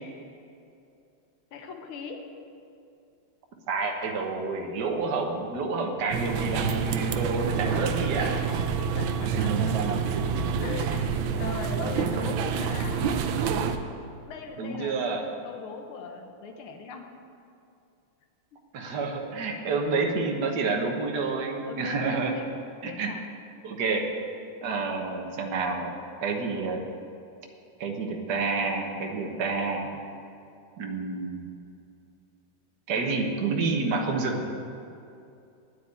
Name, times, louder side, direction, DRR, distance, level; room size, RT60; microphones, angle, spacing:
voice 1, 1.5-2.2 8.3-10.2 10.6-13.1 13.4-13.6 14.3-17.3 18.8-18.9 21.6-22.5 22.8-23.2, left 5 dB, 80° left, 4 dB, 1.8 m, -40 dB
voice 2, 3.7-8.4 14.6-15.2 18.7-22.4 22.8-23.2 23.6-24.1 24.6-25.9 26.2-26.9 27.8-29.9 30.8-31.5 32.9-34.4, right 3 dB, 55° right, 2 dB, 1.7 m, -29 dB
sound 1, 6.1-13.8, right 6 dB, 75° right, 1.4 m, -27 dB
9.7 x 8.3 x 9.5 m, 2.6 s
omnidirectional pair, 2.3 m